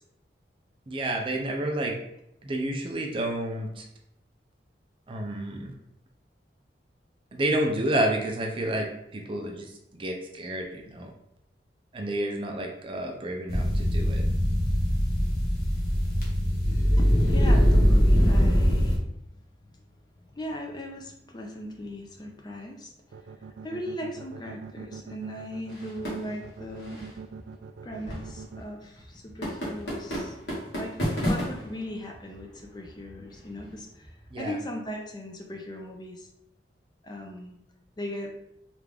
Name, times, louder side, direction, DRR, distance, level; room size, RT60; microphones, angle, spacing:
voice 1, 0.9-2.0 2.4-3.8 5.1-5.7 7.3-11.1 11.9-14.2 34.3-34.6, right 1 dB, 30° right, 1 dB, 0.5 m, -30 dB
sound 1, 13.5-19.0, equal, 55° left, 1.0 m, -22 dB
voice 2, 17.0-19.0 20.3-22.9 23.6-27.1 27.8-30.4 30.7-34.1 34.4-36.3 37.0-37.6 38.0-38.3, left 1 dB, 25° left, 1 dB, 0.4 m, -38 dB
sound 2, 23.1-28.6, right 5 dB, 85° right, 0.3 m, -42 dB
sound 3, 25.7-34.3, equal, 75° left, 1.4 m, -35 dB
3.4 x 2.5 x 3.3 m, 0.78 s
head